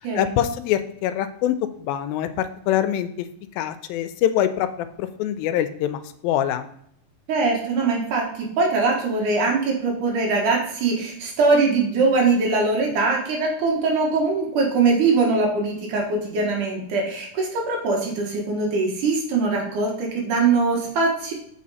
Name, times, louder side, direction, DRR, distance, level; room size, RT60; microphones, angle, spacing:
voice 1, 0.2-3.1 3.6-4.7 5.0-6.7, left 11 dB, 85° left, 10 dB, 2.3 m, -24 dB
voice 2, 7.3-21.3, right 3 dB, 65° right, 0 dB, 2.7 m, -22 dB
7.4 x 5.0 x 4.1 m, 0.70 s
omnidirectional pair, 4.1 m